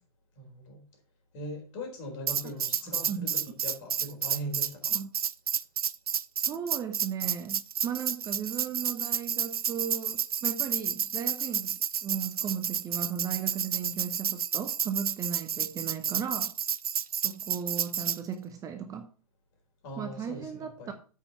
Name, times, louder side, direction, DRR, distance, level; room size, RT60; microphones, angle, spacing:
voice 1, 0.4-0.9 1.3-5.0 19.8-20.9, equal, 40° left, 4.1 m, -40 dB
Tambourine, 2.3-18.2, right 8 dB, 75° right, 0.5 m, -30 dB
voice 2, 2.9-3.3 4.9-5.1 6.4-16.5 17.2-19.1 20.0-20.9, right 7 dB, 20° right, 0.7 m, -36 dB
8.2 x 5.6 x 5.4 m
figure-of-eight pair, 110°, 19 cm